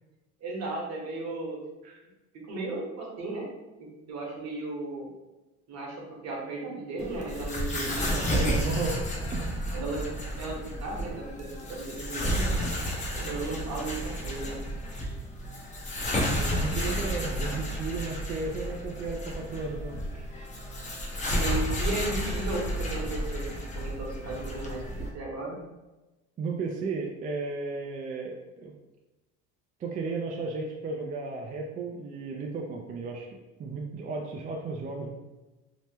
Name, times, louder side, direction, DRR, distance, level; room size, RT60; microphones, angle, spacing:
voice 1, 0.4-1.6 2.3-3.5 3.8-5.1 5.7-6.0 6.2-8.6 9.7-10.1 10.4-12.7 13.1-14.6 21.3-23.4 23.7-24.8 25.1-25.6, right 2 dB, 55° right, -2 dB, 1.1 m, -35 dB
sound 1, 7.0-25.1, equal, 25° left, 0.7 m, -31 dB
voice 2, 7.7-8.3 8.6-8.9 9.3-9.5 16.1-20.4 26.4-28.7 29.8-35.1, right 4 dB, 30° right, 0 dB, 0.4 m, -35 dB
2.9 x 2.0 x 3.3 m, 1.1 s
supercardioid pair, 95°, 31 cm